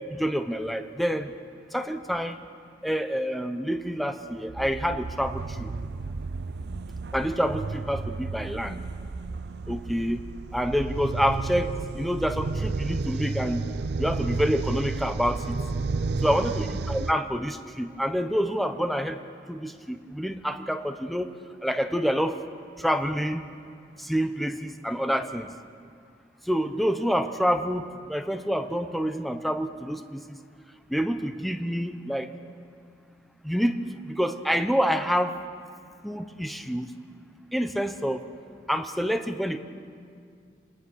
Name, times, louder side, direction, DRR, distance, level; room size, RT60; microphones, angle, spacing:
voice 1, 0.1-1.3 1.7-2.4 2.8-5.7 7.1-8.8 9.7-10.2 10.5-13.6 14.0-15.6 16.2-19.2 19.5-21.3 21.6-22.4 22.8-23.5 24.0-25.5 26.5-30.4 30.9-32.3 33.4-35.4 36.0-36.9 37.5-38.3 38.7-39.6, equal, ahead, 8 dB, 0.9 m, -27 dB
sound 1, 4.5-17.1, right 3 dB, 70° right, 0.5 m, -32 dB
28.5 x 19.5 x 6.4 m, 2.3 s
head